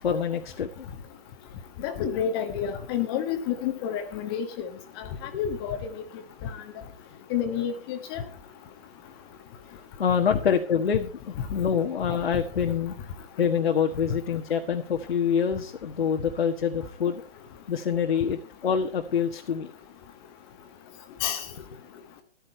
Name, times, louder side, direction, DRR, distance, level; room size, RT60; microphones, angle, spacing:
voice 1, 0.0-0.9 5.1-5.2 10.0-12.9 13.4-17.2 17.7-19.7, left 7 dB, 60° left, 3 dB, 1.6 m, -26 dB
voice 2, 1.8-4.7 5.0-5.1 5.4-5.8 6.4-6.5 7.3-8.2 10.3-10.4 21.2-21.4, left 8 dB, 20° left, 8 dB, 1.3 m, -29 dB
14.5 x 12.5 x 4.5 m, 0.40 s
hypercardioid pair, 150°, 33 cm